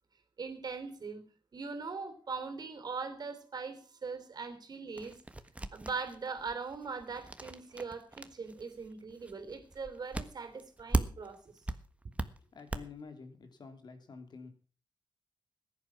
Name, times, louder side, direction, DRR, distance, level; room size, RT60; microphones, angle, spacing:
voice 1, 0.4-1.2 1.5-5.2 5.7-11.4, right 4 dB, 55° right, 9 dB, 3.3 m, -41 dB
sound 1, 5.0-11.4 11.7-12.8, right 2 dB, 15° right, 1.4 m, -37 dB
voice 2, 12.5-14.5, left 5 dB, 65° left, 7 dB, 3.1 m, -49 dB
15.0 x 11.0 x 5.9 m, 0.39 s
cardioid pair, 75°, 8 cm